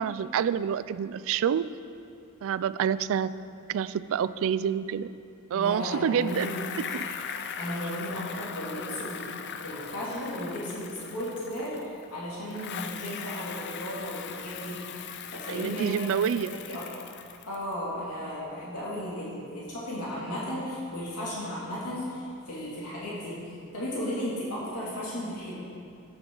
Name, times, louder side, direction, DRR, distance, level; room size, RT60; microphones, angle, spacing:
voice 1, 0.0-1.7 2.4-3.3 3.7-5.1 5.5-6.5 6.9-7.1 15.5-16.5, right 8 dB, 65° right, 15 dB, 0.3 m, -27 dB
voice 2, 5.5-6.6 7.6-9.3 9.6-14.8 15.3-16.1 16.5-16.8 17.5-25.6, equal, 80° left, -7 dB, 2.5 m, -35 dB
Bicycle, 6.2-12.1 12.5-17.7, left 7 dB, 50° left, 0.5 m, -39 dB
13.5 x 7.9 x 3.8 m, 2.5 s
head